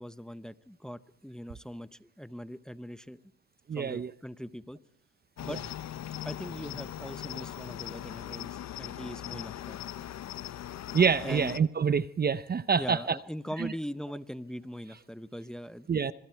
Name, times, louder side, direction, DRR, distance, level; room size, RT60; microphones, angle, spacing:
voice 1, 0.0-3.2 3.7-4.8 5.4-5.6 6.2-9.8 11.2-11.5 12.7-16.1, equal, ahead, 0.9 m, -41 dB
voice 2, 3.7-4.1 10.9-13.2 13.6-13.7 15.9-16.1, right 6 dB, 30° right, 0.7 m, -26 dB
Cricket, 5.4-11.6, left 12 dB, 60° left, 0.9 m, -40 dB
26.0 x 22.5 x 4.6 m
cardioid pair, 90°, 30 cm